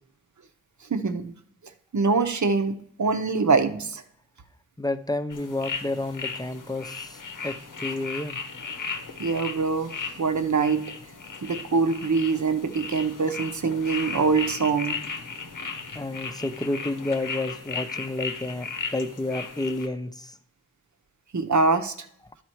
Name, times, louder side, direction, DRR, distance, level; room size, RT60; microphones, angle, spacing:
voice 1, 0.9-1.3 1.9-4.0 9.2-9.9 10.2-10.8 11.4-15.0 21.3-21.9, right 4 dB, 70° right, 8 dB, 0.8 m, -24 dB
voice 2, 4.8-8.4 15.9-20.3, left 2 dB, 15° left, 10 dB, 0.5 m, -30 dB
sound 1, 5.3-19.9, left 5 dB, 85° left, 0.9 m, -36 dB
12.0 x 4.3 x 4.5 m, 0.68 s
wide cardioid pair, 65°, 31 cm